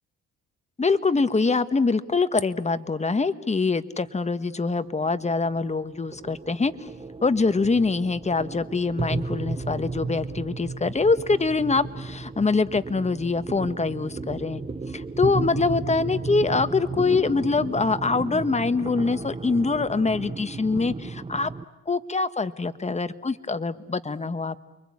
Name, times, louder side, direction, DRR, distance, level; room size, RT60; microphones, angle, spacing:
voice 1, 0.8-6.9 7.2-14.6 14.9-21.5 21.9-24.6, left 4 dB, 20° left, 12 dB, 1.3 m, -24 dB
sound 1, 4.8-21.7, right 4 dB, 20° right, 0.9 m, -34 dB
29.5 x 23.5 x 8.6 m, 1.0 s
cardioid pair, 90°, 30 cm